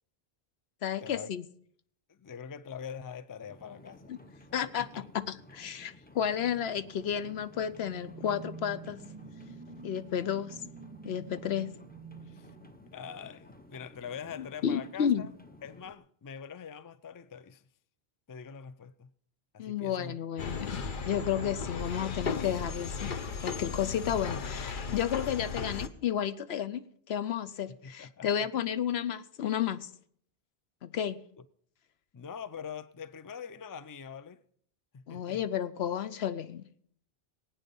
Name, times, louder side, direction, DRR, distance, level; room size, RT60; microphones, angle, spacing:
voice 1, 0.8-1.4 4.1-4.2 4.5-4.9 5.1-9.0 9.8-10.6 11.0-11.7 14.4-15.2 19.6-23.2 23.4-29.9 30.8-31.2 35.1-36.7, left 9 dB, 80° left, 1.0 m, -32 dB
voice 2, 2.1-4.1 4.6-5.0 5.9-6.1 12.2-12.5 12.9-15.3 15.6-17.6 18.3-19.1 19.5-20.2 27.7-28.7 32.1-34.4 34.9-35.5, left 7 dB, 30° left, 0.4 m, -44 dB
sound 1, 3.5-15.9, left 1 dB, 10° left, 0.8 m, -54 dB
sound 2, 7.2-13.5, right 4 dB, 30° right, 0.6 m, -49 dB
sound 3, 20.4-25.9, left 5 dB, 55° left, 1.0 m, -36 dB
20.0 x 9.1 x 5.4 m
omnidirectional pair, 1.0 m